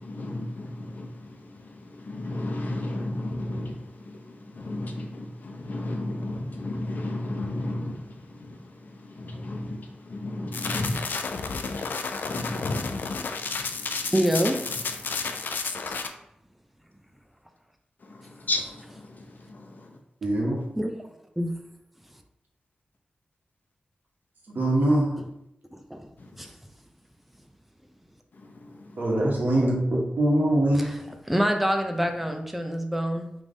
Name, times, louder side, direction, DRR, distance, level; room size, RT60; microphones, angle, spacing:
voice 1, 0.0-14.1 15.0-15.4 18.0-19.9 26.2-26.4 28.3-29.1, left 1 dB, 65° left, 0.8 m, -34 dB
sound 1, 10.5-16.1, left 4 dB, 85° left, 0.4 m, -31 dB
voice 2, 14.1-14.6 20.8-20.9 21.4-21.5 25.7-26.1 26.4-26.5 30.7-31.0 31.3-33.3, equal, 5° right, 0.5 m, -26 dB
voice 3, 20.2-20.6 24.5-25.1 29.0-30.9, right 1 dB, 75° right, 1.4 m, -23 dB
3.6 x 3.3 x 3.9 m
wide cardioid pair, 75°, 3 cm